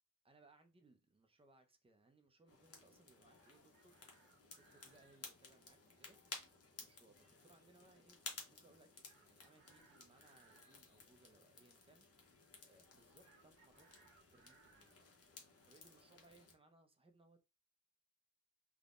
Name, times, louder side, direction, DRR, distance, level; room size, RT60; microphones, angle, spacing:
voice 1, 0.2-4.1 4.4-6.2 6.8-12.4 12.6-15.0 15.6-17.4, right 2 dB, 20° right, 0.4 m, -69 dB
sound 1, 2.5-16.5, left 4 dB, 45° left, 0.7 m, -57 dB
Chicken rooster, 3.1-5.2 9.0-10.8 13.2-15.0, right 5 dB, 35° right, 1.2 m, -70 dB
3.4 x 2.0 x 2.4 m
wide cardioid pair, 170°, 34 cm